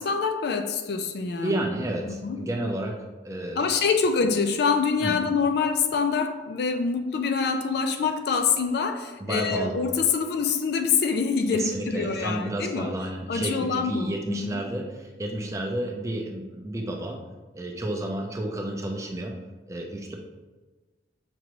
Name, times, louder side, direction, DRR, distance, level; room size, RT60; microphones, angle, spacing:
voice 1, 0.0-1.7 2.0-2.4 3.6-12.9 13.3-14.6, left 5 dB, 60° left, 7 dB, 0.3 m, -25 dB
voice 2, 1.4-3.0 3.2-3.7 5.0-5.2 9.2-9.8 11.5-17.2 17.5-19.3 19.7-20.1, right 1 dB, 15° right, 1 dB, 0.4 m, -31 dB
6.0 x 2.6 x 2.9 m, 1.2 s
head